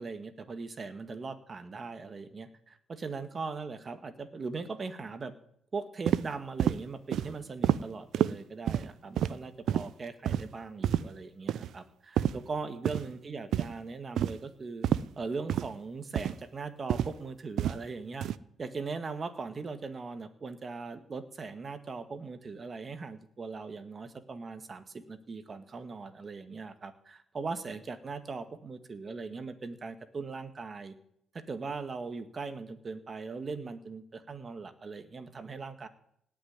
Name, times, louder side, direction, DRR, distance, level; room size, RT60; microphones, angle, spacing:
voice 1, 0.0-5.3 5.7-14.9 15.2-18.3 18.6-30.9 31.3-35.9, right 4 dB, 35° right, 10 dB, 1.8 m, -40 dB
sound 1, 6.1-6.2 6.6-6.8 7.1-7.3 7.6-7.8 8.1-8.3 8.7-8.9 9.2-9.3 9.7-9.9 10.3-10.4 10.8-11.0 11.5-11.7 12.2-12.3 12.9-13.0 13.5-13.7 14.2-14.4 14.8-15.0 15.5-15.7 16.2-16.3 16.9-17.1 17.6-17.8 18.2-18.4, right 10 dB, 75° right, 0.6 m, -28 dB
18.0 x 6.4 x 9.7 m, 0.71 s
cardioid pair, 90°, 0 cm